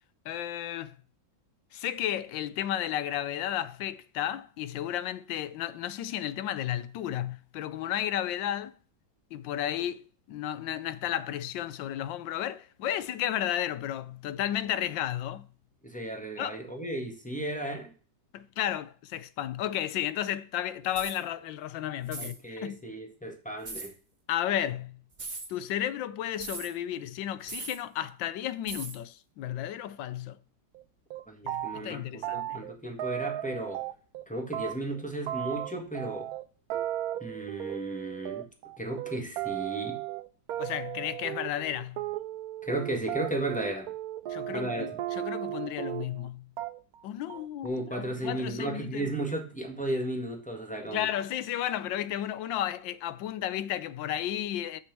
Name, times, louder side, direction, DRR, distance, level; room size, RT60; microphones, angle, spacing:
voice 1, 0.2-1.0 1.7-8.7 9.3-15.5 16.4-16.6 18.3-22.8 24.3-25.0 25.5-30.4 31.4-32.6 40.6-42.0 44.3-46.5 47.0-49.1 50.8-54.8, left 11 dB, 80° left, 1.3 m, -33 dB
voice 2, 15.8-17.9 22.2-23.9 31.3-33.8 34.3-36.3 37.2-38.5 38.8-40.0 42.6-43.9 44.5-45.0 47.6-51.1, right 1 dB, 5° left, 1.6 m, -34 dB
sound 1, 20.9-21.2 22.1-22.4 23.6-23.9 25.1-25.5 26.4-26.7 27.5-27.8 28.7-29.0, right 3 dB, 25° right, 1.5 m, -39 dB
sound 2, 30.7-30.8 31.1-31.9 32.2-34.2 34.5-46.3 46.6-47.0 47.3-47.7, right 13 dB, 70° right, 0.9 m, -35 dB
6.6 x 5.9 x 5.9 m
omnidirectional pair, 2.1 m